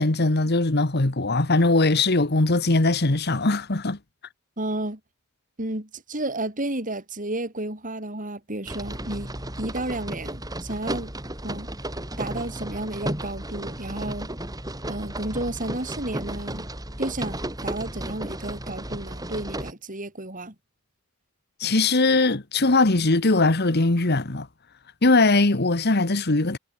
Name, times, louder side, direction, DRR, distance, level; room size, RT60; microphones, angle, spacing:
voice 1, 0.0-4.0 21.6-24.5 25.0-26.6, left 2 dB, 50° left, 1.5 m, -20 dB
voice 2, 4.6-5.0 5.6-9.3 9.6-11.1 11.4-11.7 12.2-14.3 14.9-16.7 17.0-20.5, right 1 dB, 40° right, 5.9 m, -32 dB
sound 1, 8.7-19.7, right 1 dB, 20° right, 4.5 m, -34 dB
head